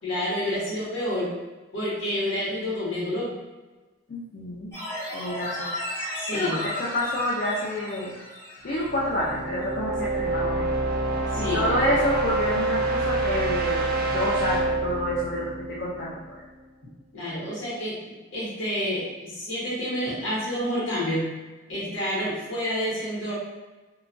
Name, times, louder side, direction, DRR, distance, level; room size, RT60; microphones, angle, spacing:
voice 1, 0.0-1.3 1.7-3.3 6.2-6.6 11.3-11.9 17.1-18.0 18.3-21.3 21.7-23.3, left 1 dB, 85° left, -7 dB, 1.2 m, -29 dB
voice 2, 4.1-4.7 5.1-5.7 6.3-8.2 8.6-10.7 11.4-16.4, left 1 dB, 50° left, -6 dB, 0.4 m, -28 dB
sound 1, 4.7-8.9 9.3-9.4, left 1 dB, 15° left, 0.9 m, -34 dB
sound 2, 8.7-16.5, right 2 dB, 45° right, 0.4 m, -27 dB
2.9 x 2.3 x 2.5 m, 1.2 s
head